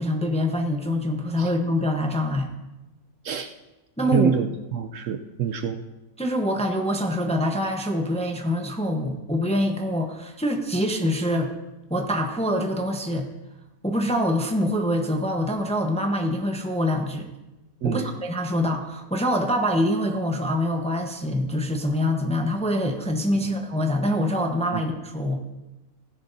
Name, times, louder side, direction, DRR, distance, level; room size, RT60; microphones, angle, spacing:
voice 1, 0.0-2.5 4.0-4.3 6.2-11.5 11.9-13.3 13.8-17.3 17.8-25.4, left 1 dB, 5° left, 3 dB, 0.7 m, -25 dB
voice 2, 4.1-5.8 17.8-18.1 23.3-23.6 24.7-24.8, right 7 dB, 65° right, 6 dB, 0.9 m, -26 dB
16.0 x 10.5 x 2.7 m, 1.0 s
omnidirectional pair, 1.6 m